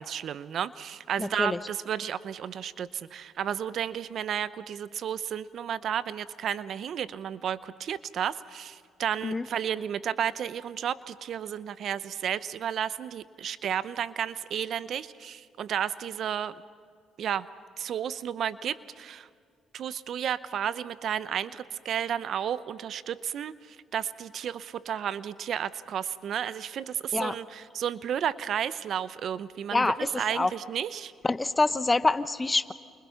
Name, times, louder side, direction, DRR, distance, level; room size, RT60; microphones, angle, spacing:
voice 1, 0.0-16.6 17.2-17.5 17.8-19.3 19.7-31.1, right 9 dB, 65° right, 16 dB, 0.7 m, -32 dB
voice 2, 1.2-1.6 9.2-9.5 27.1-27.3 29.7-29.9 30.3-30.5 31.2-32.7, left 3 dB, 20° left, 14 dB, 1.0 m, -25 dB
29.0 x 29.0 x 5.8 m, 2.3 s
supercardioid pair, 70°, 0 cm